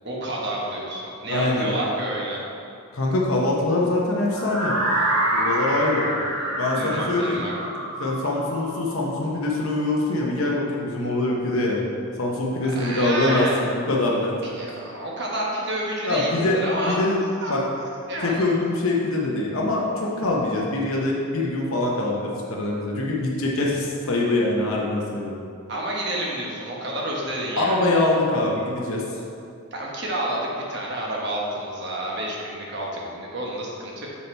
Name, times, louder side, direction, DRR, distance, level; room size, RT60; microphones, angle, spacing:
voice 1, 0.0-2.4 6.0-7.5 12.6-13.6 14.6-17.1 17.4-17.7 18.1-18.5 25.7-27.8 29.7-34.1, right 1 dB, 50° right, -3 dB, 1.1 m, -29 dB
voice 2, 1.3-1.7 2.9-4.7 5.3-6.1 6.6-7.4 8.0-11.8 12.2-14.3 16.0-16.6 16.9-17.2 17.5-17.6 18.2-25.3 27.6-29.0, left 2 dB, 70° left, -2 dB, 0.8 m, -23 dB
sound 1, 4.3-10.3, right 1 dB, 70° right, 1.6 m, -27 dB
7.3 x 4.1 x 4.4 m, 2.5 s
head